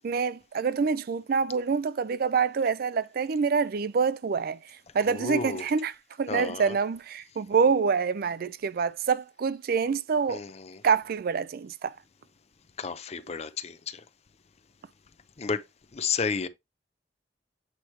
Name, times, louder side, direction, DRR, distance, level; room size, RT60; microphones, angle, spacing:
voice 1, 0.0-4.6 4.9-5.9 6.2-10.4 10.8-11.9, right 5 dB, 55° right, 0.4 m, -26 dB
voice 2, 5.1-5.7 6.3-6.8 10.3-10.8 12.8-14.0 15.4-15.7 15.9-16.5, left 5 dB, 40° left, 0.6 m, -32 dB
8.2 x 3.0 x 4.5 m
head